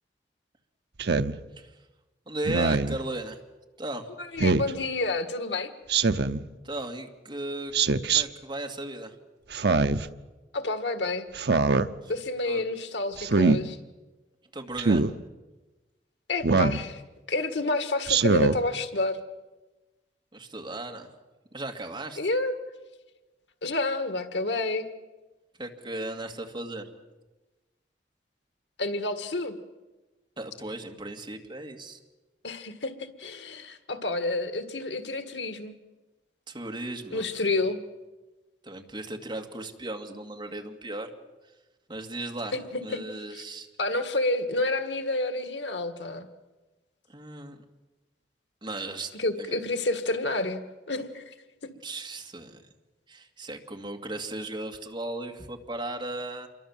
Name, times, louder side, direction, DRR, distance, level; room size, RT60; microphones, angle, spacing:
Speech synthesizer, 1.0-1.3 2.4-3.0 4.4-4.7 5.9-6.4 7.7-8.2 9.5-10.1 11.3-11.9 13.2-13.6 14.8-15.1 16.4-16.8 18.1-18.6, right 4 dB, 65° right, 0.8 m, -23 dB
voice 1, 2.3-3.4 3.8-4.1 6.6-7.7 8.1-9.2 12.0-12.1 12.4-12.6 14.5-15.1 20.3-21.1 21.5-22.2 25.6-26.9 30.4-32.0 36.5-37.5 38.6-41.1 41.9-43.7 47.1-47.6 48.6-49.1 49.4-49.6 51.8-52.6 53.1-56.5, right 2 dB, 25° right, 3 dB, 2.3 m, -36 dB
voice 2, 4.3-5.7 10.5-11.3 12.1-13.8 16.3-17.0 17.3-19.2 22.2-22.6 23.6-24.9 28.8-29.5 32.4-35.7 37.1-37.8 42.5-42.8 43.3-43.4 43.8-46.3 49.1-51.3, left 2 dB, 80° left, 9 dB, 1.8 m, -29 dB
27.5 x 23.0 x 7.4 m, 1.1 s
head